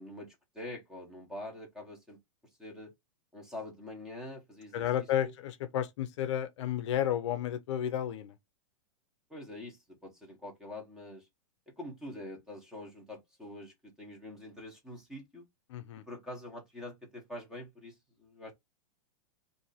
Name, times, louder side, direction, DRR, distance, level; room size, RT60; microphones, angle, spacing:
voice 1, 0.0-2.2 2.6-2.9 3.3-5.3 9.3-11.3 11.8-15.4 16.1-18.5, left 1 dB, 5° right, 1.0 m, -45 dB
voice 2, 4.7-8.3 15.7-16.0, left 10 dB, 60° left, 0.6 m, -32 dB
2.8 x 2.6 x 4.0 m
supercardioid pair, 155°, 18 cm